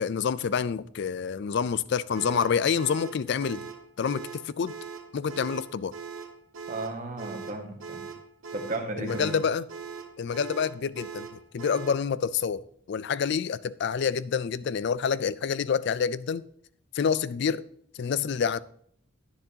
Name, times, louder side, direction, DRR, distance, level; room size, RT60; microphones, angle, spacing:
voice 1, 0.0-3.7 4.0-4.7 5.1-5.9 9.0-9.6 10.2-16.4 16.9-17.7 17.9-18.6, left 6 dB, 55° left, 0.3 m, -28 dB
sound 1, 2.1-12.1, right 6 dB, 70° right, 1.0 m, -41 dB
voice 2, 6.7-8.0 8.5-9.3, right 2 dB, 35° right, 1.6 m, -34 dB
10.5 x 10.0 x 2.8 m
head